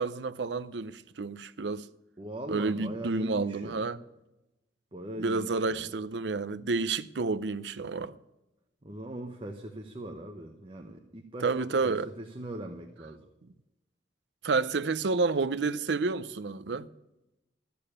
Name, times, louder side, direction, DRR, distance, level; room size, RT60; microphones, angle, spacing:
voice 1, 0.0-1.9 2.5-4.0 5.2-8.1 11.4-12.1 14.4-16.9, right 3 dB, 75° right, 0.6 m, -30 dB
voice 2, 2.2-3.9 4.9-5.9 8.8-13.2, right 1 dB, 30° right, 1.1 m, -40 dB
14.5 x 7.0 x 9.9 m
head